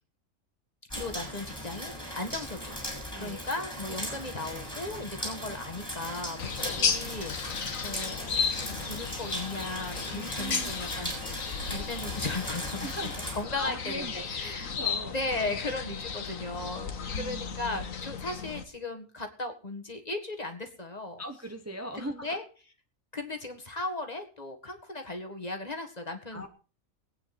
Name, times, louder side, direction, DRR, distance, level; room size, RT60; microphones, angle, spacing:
voice 1, 0.9-11.3 11.7-12.9 13.4-14.7 15.0-21.2 22.0-22.4 23.1-26.5, left 2 dB, 30° left, 5 dB, 1.8 m, -37 dB
sound 1, 0.9-13.4, equal, 10° left, 6.9 m, -38 dB
voice 2, 3.1-3.5 6.6-7.0 10.1-10.7 12.8-13.1 13.5-14.2 14.6-15.1 17.1-17.4 21.2-22.4 26.3-26.5, right 1 dB, 15° right, 5 dB, 1.0 m, -39 dB
sound 2, 6.4-18.6, left 6 dB, 85° left, 1.6 m, -34 dB
21.0 x 9.3 x 4.3 m, 0.38 s
omnidirectional pair, 1.4 m